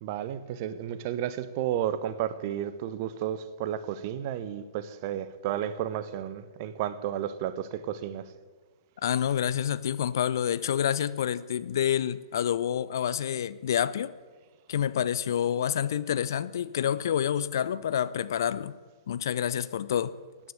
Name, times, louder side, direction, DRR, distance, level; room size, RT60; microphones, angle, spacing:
voice 1, 0.0-8.2, right 10 dB, 40° right, 14 dB, 1.0 m, -32 dB
voice 2, 9.0-14.1 14.7-18.7 19.1-20.1, left 9 dB, 55° left, 16 dB, 0.6 m, -28 dB
14.0 x 10.0 x 9.0 m, 1.4 s
figure-of-eight pair, 110°, 2 cm